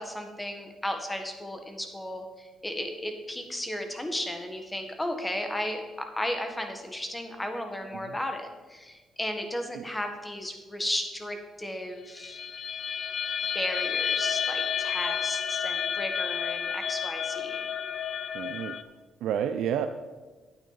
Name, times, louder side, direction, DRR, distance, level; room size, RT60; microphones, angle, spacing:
voice 1, 0.0-12.4 13.5-17.7, left 1 dB, 10° left, 5 dB, 1.4 m, -34 dB
sound 1, 12.2-18.8, left 7 dB, 50° left, 0.4 m, -31 dB
voice 2, 18.3-18.8 19.2-19.9, right 9 dB, 80° right, 8 dB, 0.4 m, -30 dB
9.4 x 8.9 x 4.0 m, 1.3 s
cardioid pair, 90°, 0 cm